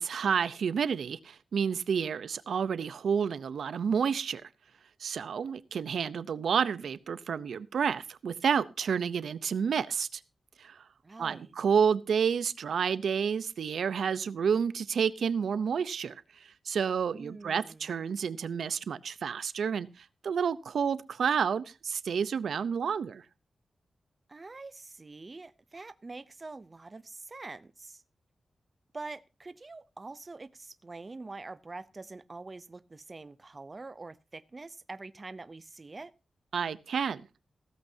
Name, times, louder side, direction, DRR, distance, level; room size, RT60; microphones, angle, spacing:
voice 1, 0.0-4.5 5.0-10.2 10.6-10.8 11.2-23.2 36.5-37.2, right 7 dB, 75° right, 0.7 m, -30 dB
voice 2, 11.0-11.5 17.1-17.9 24.3-28.0 28.9-36.1, right 3 dB, 25° right, 0.5 m, -45 dB
16.0 x 14.0 x 2.7 m
wide cardioid pair, 155°, 0 cm